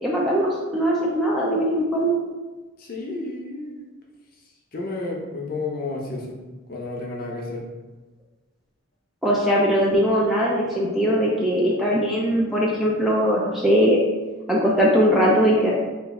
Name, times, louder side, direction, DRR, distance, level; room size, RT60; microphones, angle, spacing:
voice 1, 0.0-2.2 9.2-14.0 14.5-15.7, equal, ahead, -5 dB, 0.4 m, -20 dB
voice 2, 2.8-3.9 4.7-6.4 6.7-7.6, left 2 dB, 45° left, -1 dB, 0.6 m, -31 dB
3.0 x 2.5 x 3.6 m, 1.2 s
head